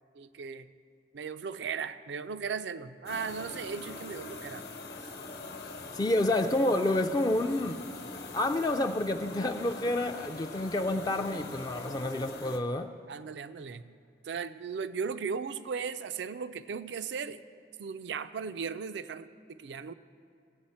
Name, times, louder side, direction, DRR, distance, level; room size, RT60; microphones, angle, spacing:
voice 1, 0.1-0.7 1.1-4.6 5.0-5.1 13.1-14.0 14.2-17.4 17.8-19.9, right 6 dB, 75° right, 13 dB, 0.4 m, -37 dB
sound 1, 3.0-12.6, left 3 dB, 60° left, 1.0 m, -43 dB
voice 2, 5.9-7.8 8.3-12.9, left 1 dB, 20° left, 6 dB, 0.3 m, -29 dB
18.0 x 7.7 x 4.3 m, 2.4 s
head